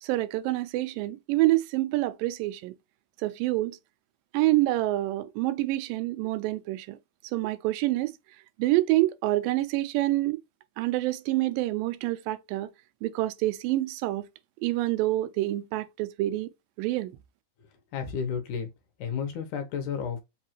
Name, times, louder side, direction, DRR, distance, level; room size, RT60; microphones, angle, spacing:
voice 1, 0.0-2.7 3.2-3.8 4.3-7.0 7.3-8.2 8.6-10.4 10.8-12.7 13.0-14.3 14.6-16.5 16.8-17.1, right 17 dB, 85° right, 2.2 m, -27 dB
voice 2, 17.9-18.7 19.0-20.2, left 7 dB, 70° left, 2.1 m, -32 dB
5.5 x 2.5 x 2.9 m
omnidirectional pair, 3.9 m